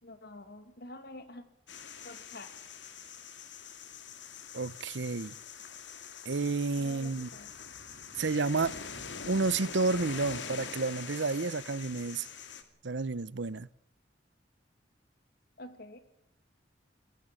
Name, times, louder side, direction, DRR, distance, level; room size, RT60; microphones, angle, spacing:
voice 1, 0.0-1.4 2.0-2.5 6.8-7.5 15.6-16.0, left 2 dB, 60° left, 2.6 m, -47 dB
sound 1, 1.7-12.6, left 6 dB, 75° left, 2.5 m, -44 dB
voice 2, 4.5-5.3 6.2-7.3 8.2-8.7 9.3-12.3 12.8-13.7, right 3 dB, 75° right, 0.8 m, -30 dB
22.0 x 15.5 x 8.6 m
head